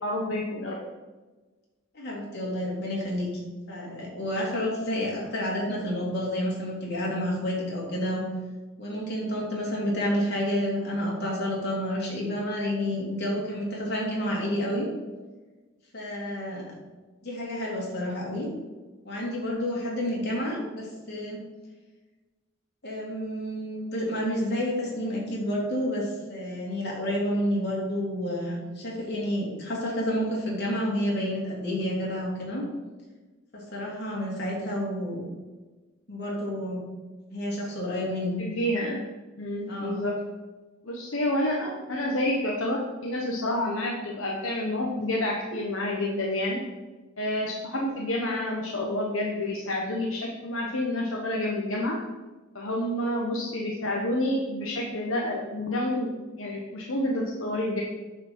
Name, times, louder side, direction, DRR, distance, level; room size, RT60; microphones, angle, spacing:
voice 1, 0.0-0.8 38.4-39.0 39.4-40.2 40.8-46.6 47.2-52.0 52.5-57.8, left 1 dB, 75° left, -2 dB, 1.2 m, -29 dB
voice 2, 1.9-8.3 8.8-14.9 15.9-16.7 17.2-18.5 19.1-21.4 22.8-32.6 33.5-35.2 36.1-36.8 37.3-38.4 39.7-40.0, equal, 55° left, -3 dB, 3.3 m, -30 dB
9.4 x 4.9 x 7.4 m, 1.3 s
head